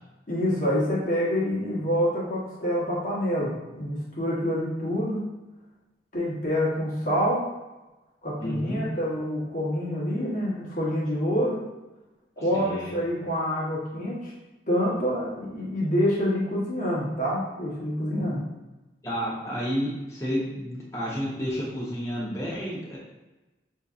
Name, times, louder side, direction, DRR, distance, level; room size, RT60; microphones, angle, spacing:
voice 1, 0.3-5.2 6.1-7.4 8.2-11.6 12.4-14.3 14.7-18.5, equal, 45° left, -7 dB, 1.2 m, -27 dB
voice 2, 8.4-8.9 12.5-12.9 19.0-23.0, equal, 15° left, -6 dB, 1.0 m, -31 dB
6.0 x 2.7 x 2.5 m, 1.1 s
head